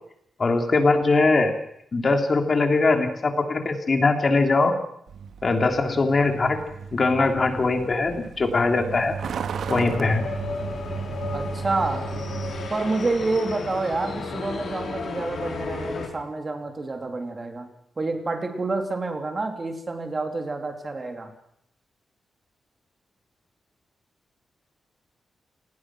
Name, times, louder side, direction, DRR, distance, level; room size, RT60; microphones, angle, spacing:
voice 1, 0.4-1.5 1.9-4.7 5.4-6.6 6.9-9.1 9.7-10.2, left 3 dB, 35° left, 5 dB, 3.2 m, -21 dB
Truck, 5.1-12.7, right 6 dB, 80° right, 1.7 m, -34 dB
sound 1, 9.7-16.1, left 4 dB, 65° left, 5.3 m, -33 dB
voice 2, 11.3-12.1 12.7-17.7 18.0-21.3, right 3 dB, 30° right, 5 dB, 3.1 m, -28 dB
28.5 x 19.0 x 6.3 m, 0.74 s
wide cardioid pair, 130°, 0 cm